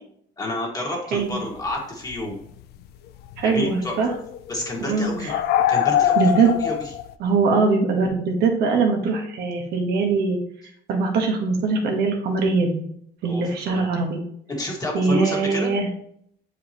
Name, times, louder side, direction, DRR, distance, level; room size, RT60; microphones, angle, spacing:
voice 1, 0.4-2.4 3.4-3.9 4.5-5.3 5.7-6.7 13.2-13.8 14.5-15.7, left 1 dB, 20° left, -1 dB, 1.9 m, -29 dB
sound 1, 1.7-1.8 2.1-2.4 3.3-3.4 3.9-7.1, left 10 dB, 70° left, 0.4 m, -23 dB
voice 2, 3.4-4.1 4.8-5.4 6.2-6.5 7.2-10.4 10.9-12.8 13.2-14.2 14.9-15.9, right 4 dB, 75° right, 2 dB, 1.3 m, -22 dB
7.2 x 4.8 x 3.0 m, 0.68 s
cardioid pair, 110°, 17 cm